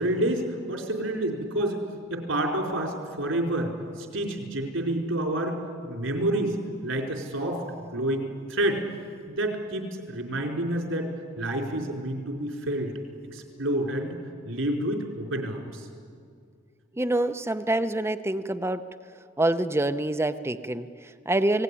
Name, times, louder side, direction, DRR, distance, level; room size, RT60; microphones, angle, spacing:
voice 1, 0.0-1.8 2.1-3.7 4.0-5.6 5.8-6.5 6.8-8.8 9.3-11.1 11.4-12.9 13.3-14.2 14.5-15.9, right 1 dB, 85° right, 2 dB, 4.6 m, -28 dB
voice 2, 16.9-18.9 19.4-21.6, right 1 dB, 15° right, 10 dB, 0.7 m, -26 dB
29.0 x 18.5 x 9.9 m, 2.2 s
head